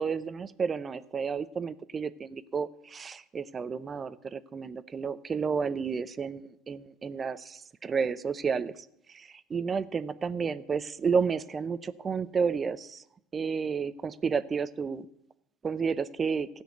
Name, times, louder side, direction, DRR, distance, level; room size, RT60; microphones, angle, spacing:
voice 1, 0.0-13.0 13.3-15.1 15.6-16.5, right 5 dB, 30° right, 14 dB, 0.7 m, -31 dB
14.5 x 6.4 x 9.3 m, 0.78 s
supercardioid pair, 85°, 0 cm